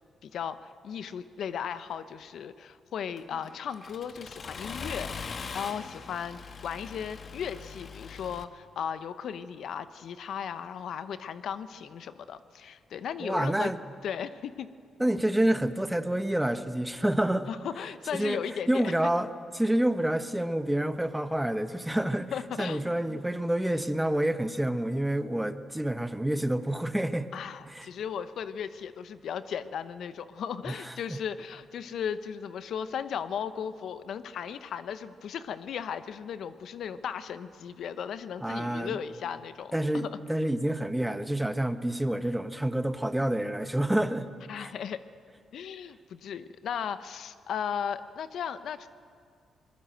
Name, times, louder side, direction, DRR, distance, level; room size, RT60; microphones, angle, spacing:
voice 1, 0.2-13.7 14.0-14.7 17.5-18.8 22.3-23.2 27.3-39.8 44.5-45.0 45.5-48.9, left 8 dB, 70° left, 12 dB, 0.8 m, -36 dB
Accelerating revving vroom, 3.2-8.4, left 5 dB, 50° left, 1.3 m, -41 dB
voice 2, 13.2-13.8 15.0-17.5 18.1-18.4 18.7-19.3 19.5-27.3 27.7-27.9 30.7-31.2 38.4-39.0 39.7-44.3 44.6-44.7, right 1 dB, 10° right, 10 dB, 1.3 m, -28 dB
22.0 x 20.5 x 7.9 m, 2.2 s
supercardioid pair, 65°, 0 cm